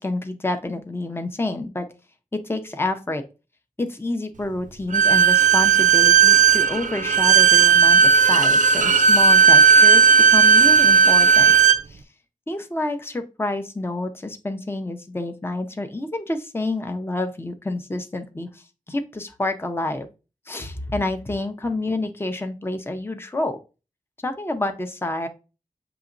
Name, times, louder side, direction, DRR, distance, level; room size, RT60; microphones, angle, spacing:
voice 1, 0.0-1.9 2.3-3.2 3.8-11.5 11.9-12.0 12.5-20.1 20.5-23.6 24.2-25.3, left 2 dB, 15° left, 7 dB, 0.6 m, -28 dB
Bowed string instrument, 4.9-11.8, right 6 dB, 60° right, 0.4 m, -14 dB
6.8 x 2.9 x 2.5 m, 0.31 s
wide cardioid pair, 55°, 14 cm